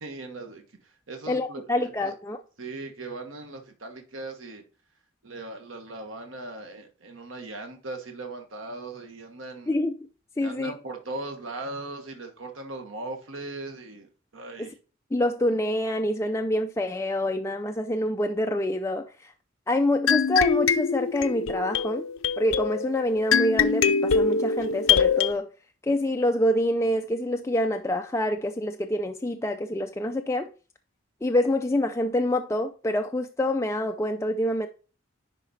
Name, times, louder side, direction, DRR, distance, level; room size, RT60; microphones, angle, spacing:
voice 1, 0.0-2.1 2.6-4.6 5.2-9.7 10.4-14.7, right 2 dB, 75° right, 1.4 m, -39 dB
voice 2, 1.3-2.4 9.7-9.9 10.4-10.7 14.6-14.7 15.1-19.3 19.7-22.0 22.4-25.5 25.8-30.5 31.2-34.7, left 1 dB, 15° left, 0.4 m, -26 dB
sound 1, 20.1-25.3, left 6 dB, 80° left, 0.5 m, -24 dB
10.5 x 4.2 x 4.0 m
head